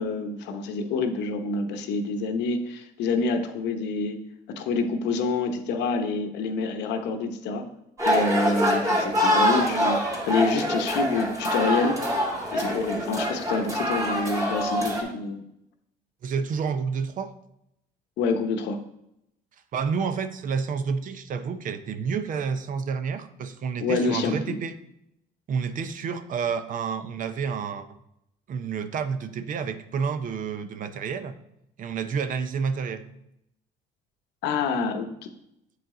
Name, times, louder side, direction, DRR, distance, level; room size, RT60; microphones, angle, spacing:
voice 1, 0.0-4.2 4.5-7.7 8.0-12.0 12.5-15.4 18.2-18.8 23.8-24.6 34.4-35.3, left 4 dB, 80° left, 6 dB, 0.9 m, -27 dB
sound 1, 8.0-15.0, equal, 20° right, 2.0 m, -25 dB
voice 2, 16.2-17.3 19.7-24.8 25.5-27.9 28.5-31.4 31.8-33.1, right 6 dB, 50° right, 10 dB, 0.6 m, -29 dB
7.8 x 5.0 x 3.8 m, 0.80 s
cardioid pair, 110°, 17 cm